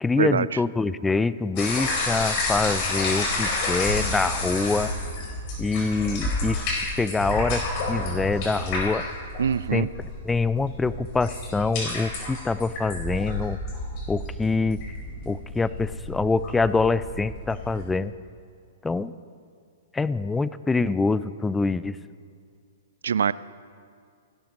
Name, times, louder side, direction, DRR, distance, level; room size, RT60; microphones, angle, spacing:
voice 1, 0.0-4.9 5.6-9.1 9.7-13.6 14.1-14.8 15.3-18.1 18.8-19.1 19.9-22.0, left 3 dB, 10° left, 17 dB, 0.4 m, -25 dB
sound 1, 1.6-17.8, left 2 dB, 40° left, 4.4 m, -30 dB
voice 2, 9.4-9.9 23.0-23.3, right 7 dB, 65° right, 19 dB, 0.4 m, -23 dB
30.0 x 12.0 x 3.0 m, 2.2 s
figure-of-eight pair, 110°, 0 cm